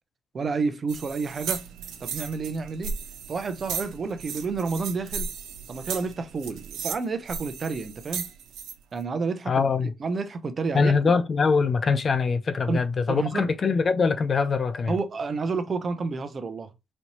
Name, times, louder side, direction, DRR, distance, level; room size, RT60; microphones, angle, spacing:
voice 1, 0.3-1.6 2.0-2.9 3.3-5.3 5.7-8.3 8.9-9.7 10.0-10.9 12.7-12.8 13.1-13.5 14.9-16.7, right 4 dB, 40° right, 0.6 m, -30 dB
sound 1, 0.9-8.7, right 6 dB, 85° right, 0.8 m, -36 dB
voice 2, 9.5-9.9 10.7-15.0, left 5 dB, 40° left, 0.4 m, -23 dB
4.2 x 2.7 x 3.0 m
cardioid pair, 90°, 0 cm